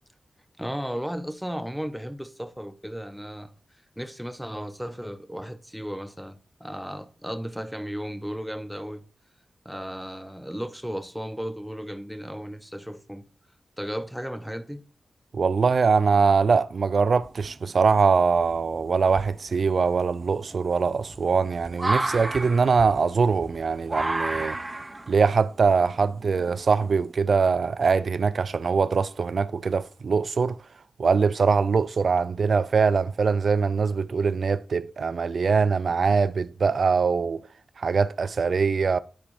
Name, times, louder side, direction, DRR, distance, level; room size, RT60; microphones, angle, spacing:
voice 1, 0.6-3.5 4.0-9.0 9.6-13.3 13.8-14.8, equal, ahead, 0.8 m, -35 dB
voice 2, 15.3-24.6 25.1-30.6 31.0-37.4 37.8-39.0, right 5 dB, 70° right, 0.4 m, -22 dB
sound 1, 17.2-17.8 18.5-18.6 19.1-27.1, right 2 dB, 30° right, 0.6 m, -32 dB
10.0 x 4.2 x 2.6 m
cardioid pair, 40°, 0 cm